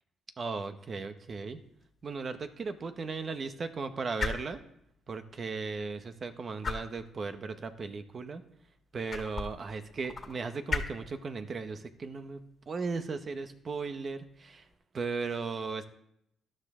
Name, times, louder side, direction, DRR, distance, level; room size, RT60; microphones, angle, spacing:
voice 1, 0.4-1.6 2.0-4.6 5.1-8.4 8.9-12.4 12.7-14.6 14.9-15.8, right 4 dB, 45° right, 9 dB, 1.1 m, -36 dB
sound 1, 1.2-14.7, left 4 dB, 40° left, 1.8 m, -43 dB
13.0 x 12.0 x 3.8 m, 0.76 s
cardioid pair, 90°, 0 cm